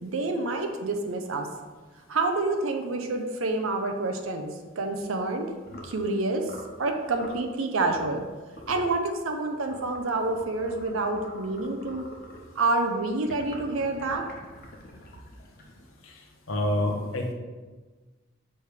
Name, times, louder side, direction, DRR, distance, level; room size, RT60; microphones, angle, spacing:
voice 1, 0.0-1.5 2.1-5.5 5.8-6.5 6.8-8.2 8.7-12.0 12.5-14.2, right 3 dB, 80° right, 4 dB, 0.6 m, -28 dB
sound 1, 5.6-6.0 6.4-6.8 7.1-7.4 7.9-8.2 8.5-9.0 9.6-12.5 13.2-16.0, left 1 dB, 50° left, 1.0 m, -46 dB
voice 2, 16.5-17.3, left 1 dB, 80° left, 1 dB, 1.1 m, -26 dB
6.9 x 3.3 x 5.0 m, 1.3 s
head